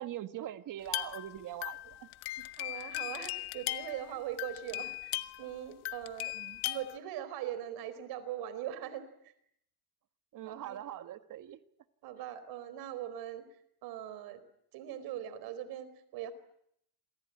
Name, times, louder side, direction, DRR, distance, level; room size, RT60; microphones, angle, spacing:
voice 1, 0.0-2.1 2.4-2.5 6.3-6.6 10.3-11.6, right 12 dB, 55° right, 10 dB, 1.7 m, -42 dB
sound 1, 0.9-5.5 5.9-7.0, left 17 dB, 85° left, 1.4 m, -38 dB
voice 2, 2.6-6.3 6.6-9.3 10.4-10.8 12.0-13.5 13.8-14.4 14.7-16.3, right 11 dB, 75° right, 14 dB, 4.5 m, -41 dB
28.0 x 23.5 x 9.0 m, 0.74 s
cardioid pair, 110°, 37 cm